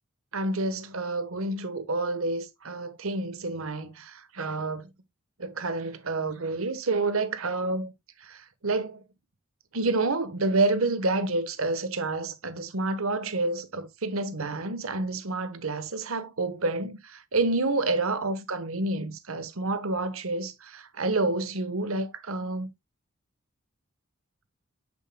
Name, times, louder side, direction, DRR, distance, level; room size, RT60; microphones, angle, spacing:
voice 1, 0.3-4.9 5.4-7.9 8.2-9.0 9.7-22.7, right 2 dB, 85° right, 1.2 m, -29 dB
8.3 x 7.1 x 2.2 m
head